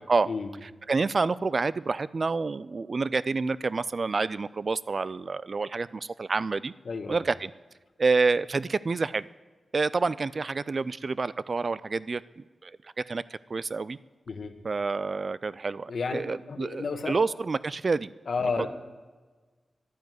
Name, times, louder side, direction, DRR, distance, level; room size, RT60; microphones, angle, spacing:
voice 1, 0.6-6.7 7.1-7.5 8.0-9.3 9.7-13.2 13.5-14.0 14.6-18.1, right 4 dB, 45° right, 18 dB, 0.3 m, -28 dB
voice 2, 6.8-7.2 14.3-14.5 15.9-16.2 16.5-17.2 18.3-18.7, left 4 dB, 60° left, 7 dB, 1.3 m, -31 dB
11.5 x 9.5 x 9.4 m, 1.3 s
wide cardioid pair, 115°, 0 cm